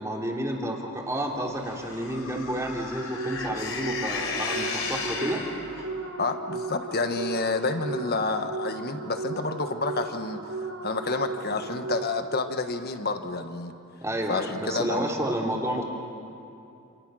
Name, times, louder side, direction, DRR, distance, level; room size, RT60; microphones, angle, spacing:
voice 1, 0.0-5.4 14.0-15.8, right 1 dB, 15° right, -1 dB, 3.1 m, -30 dB
sound 1, 1.6-5.9, left 4 dB, 65° left, 3.7 m, -34 dB
sound 2, 3.1-12.5, right 3 dB, 75° right, 3.3 m, -36 dB
voice 2, 6.2-10.4 10.8-13.7 14.3-15.1, left 3 dB, 45° left, 7 dB, 1.5 m, -29 dB
29.0 x 28.0 x 6.4 m, 2.6 s
head